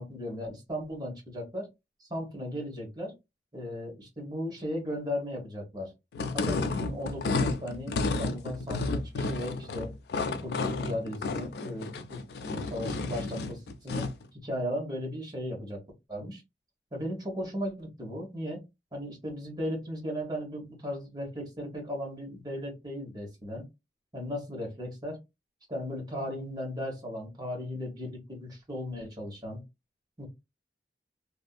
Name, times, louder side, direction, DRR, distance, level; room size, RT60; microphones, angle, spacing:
voice 1, 0.0-1.7 2.0-3.1 3.5-5.9 6.3-9.9 10.4-14.1 14.3-15.8 16.1-16.4 16.9-18.6 18.9-23.6 24.1-25.2 25.7-29.6 30.2-30.3, equal, 25° right, -1 dB, 1.0 m, -36 dB
sound 1, 6.1-14.2, left 3 dB, 65° left, 0.3 m, -31 dB
2.6 x 2.5 x 2.2 m, 0.23 s
head